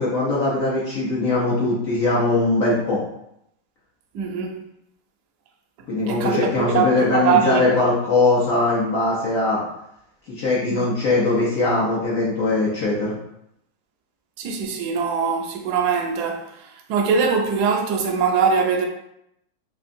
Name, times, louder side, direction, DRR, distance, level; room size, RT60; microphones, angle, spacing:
voice 1, 0.0-3.0 5.9-9.6 10.3-13.1, left 2 dB, 60° left, 0.9 m, -21 dB
voice 2, 4.1-4.6 6.1-7.7 10.7-10.9 14.4-18.9, right 5 dB, 75° right, 0.9 m, -22 dB
3.5 x 3.0 x 2.6 m
omnidirectional pair, 2.1 m